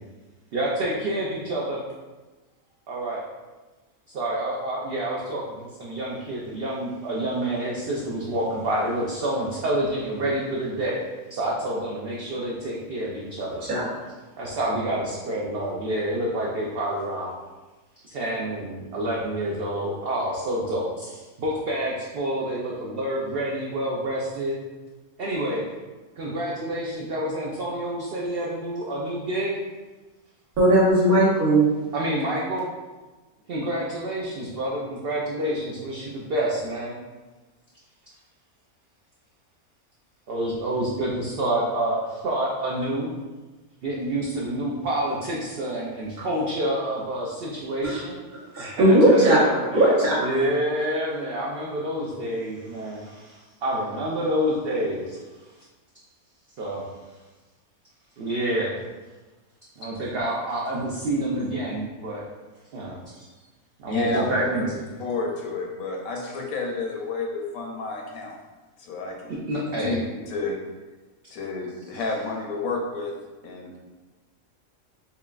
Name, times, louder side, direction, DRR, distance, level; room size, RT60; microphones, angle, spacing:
voice 1, 0.5-1.8 2.9-3.2 4.2-11.0 11.3-13.6 14.4-17.3 18.0-24.6 25.2-25.6 26.2-29.6 31.9-32.7 33.5-37.0 40.3-43.1 43.8-48.2 48.6-49.9 50.2-55.2 56.6-56.8 58.2-58.7 59.8-62.2 62.7-63.3 63.8-64.6 69.3-70.0, right 1 dB, 65° right, -4 dB, 0.6 m, -28 dB
voice 2, 30.6-31.7 47.8-48.0 48.5-50.3, right 1 dB, 80° right, -7 dB, 1.7 m, -18 dB
voice 3, 63.9-64.7 65.0-68.3 68.8-70.0 70.3-70.6 71.3-73.1 73.4-73.8, left 3 dB, 80° left, 0 dB, 1.1 m, -30 dB
5.5 x 2.2 x 2.3 m, 1.2 s
omnidirectional pair, 1.5 m